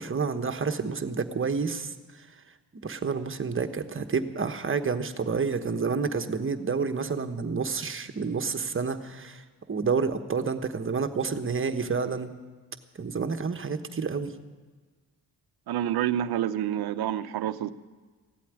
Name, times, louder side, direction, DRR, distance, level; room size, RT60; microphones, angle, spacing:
voice 1, 0.0-2.3 2.8-12.3 13.0-14.3, right 5 dB, 35° right, 1.1 m, -29 dB
voice 2, 15.7-17.7, right 11 dB, 75° right, 0.7 m, -28 dB
16.0 x 8.4 x 9.6 m
cardioid pair, 90°, 38 cm